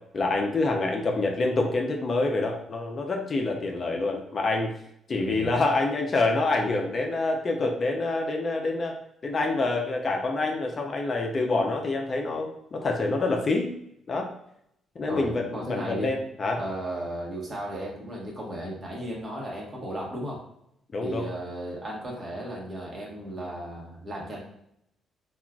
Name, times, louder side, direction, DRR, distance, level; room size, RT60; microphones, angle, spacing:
voice 1, 0.1-4.7 5.1-9.0 9.2-13.7 14.1-14.3 15.0-16.6 20.9-21.3, left 2 dB, 40° left, 2 dB, 0.5 m, -26 dB
voice 2, 5.2-5.5 15.1-16.1 16.6-20.4 21.0-24.4, right 1 dB, 35° right, -2 dB, 1.0 m, -35 dB
3.5 x 2.3 x 2.3 m, 0.77 s
cardioid pair, 90°, 0 cm